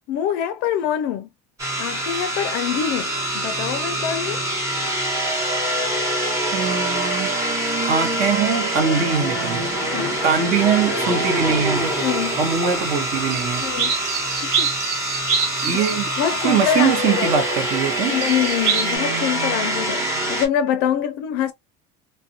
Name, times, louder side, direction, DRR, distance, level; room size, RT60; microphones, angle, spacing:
voice 1, 0.1-1.3 1.8-4.4 9.9-10.2 12.0-12.4 13.6-14.0 14.6-14.7 15.7-17.3 18.1-21.5, left 9 dB, 55° left, 0.4 m, -25 dB
sound 1, 1.6-20.5, right 1 dB, 15° right, 1.0 m, -24 dB
voice 2, 6.5-7.4 7.9-9.6 10.2-11.9 12.4-13.7 15.6-16.1 16.4-18.2, right 6 dB, 50° right, 0.9 m, -22 dB
sound 2, 13.3-17.5 18.2-19.0, right 6 dB, 85° right, 0.9 m, -26 dB
2.4 x 2.1 x 2.6 m
cardioid pair, 165°, 19 cm